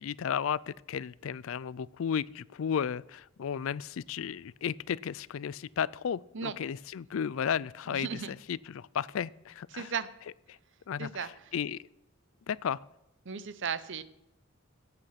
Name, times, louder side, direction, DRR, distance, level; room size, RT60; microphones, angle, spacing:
voice 1, 0.0-9.9 10.5-10.6 10.9-11.8 12.5-12.8, left 7 dB, 65° left, 21 dB, 0.4 m, -34 dB
voice 2, 7.9-8.3 9.7-10.1 11.0-11.3 13.3-14.0, right 6 dB, 60° right, 15 dB, 0.7 m, -35 dB
16.5 x 7.8 x 5.8 m, 0.86 s
head